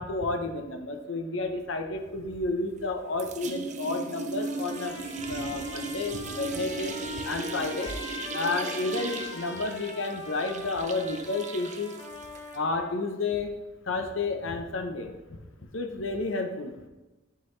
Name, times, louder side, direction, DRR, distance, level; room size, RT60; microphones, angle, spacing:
voice 1, 0.0-5.0 5.3-6.9 7.2-7.9 8.3-12.0 12.5-13.5 13.9-15.4 15.7-16.7, left 3 dB, 70° left, 5 dB, 0.8 m, -31 dB
sound 1, 2.3-2.9 3.2-12.6, right 4 dB, 40° right, 0.5 m, -37 dB
Trumpet, 4.4-13.0, left 3 dB, 35° left, 1.5 m, -42 dB
10.5 x 3.9 x 3.2 m, 1.1 s
head